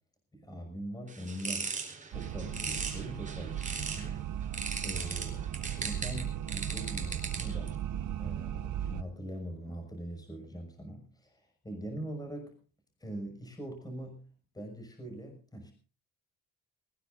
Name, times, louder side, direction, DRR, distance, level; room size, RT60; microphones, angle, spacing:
voice 1, 0.3-1.8 2.1-4.5 4.8-7.8 8.1-12.5 13.0-14.2 14.5-15.7, right 1 dB, 10° left, 4 dB, 6.1 m, -42 dB
sound 1, 1.1-4.1 4.5-7.7, right 4 dB, 25° right, 4.3 m, -38 dB
sound 2, 2.1-9.0, right 10 dB, 65° right, 1.2 m, -37 dB
22.0 x 19.5 x 2.6 m, 0.38 s
cardioid pair, 120°, 32 cm